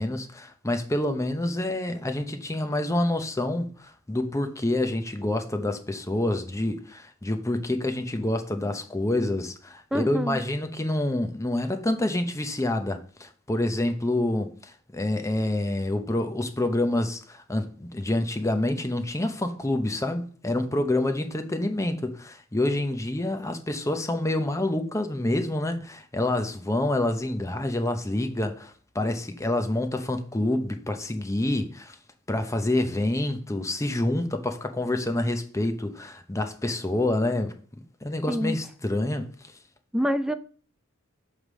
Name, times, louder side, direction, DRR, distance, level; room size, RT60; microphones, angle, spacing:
voice 1, 0.0-31.9 32.3-37.5 38.0-39.3, left 1 dB, 15° left, 0.7 m, -27 dB
voice 2, 9.9-10.4 38.3-38.6 39.9-40.3, equal, 5° right, 0.3 m, -26 dB
7.2 x 3.3 x 6.1 m
head